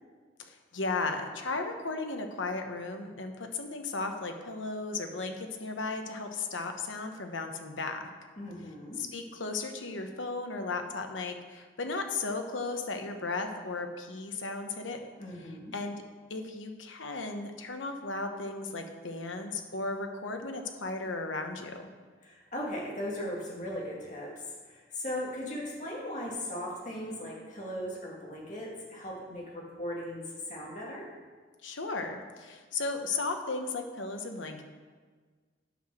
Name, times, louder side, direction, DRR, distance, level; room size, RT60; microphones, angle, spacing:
voice 1, 0.4-8.0 9.0-15.0 15.7-16.0 16.3-21.9 31.6-34.6, left 3 dB, 90° left, 5 dB, 1.1 m, -35 dB
voice 2, 8.4-9.0 15.2-15.7 22.2-31.1, left 1 dB, 40° left, -3 dB, 2.2 m, -38 dB
9.3 x 5.9 x 6.2 m, 1.5 s
head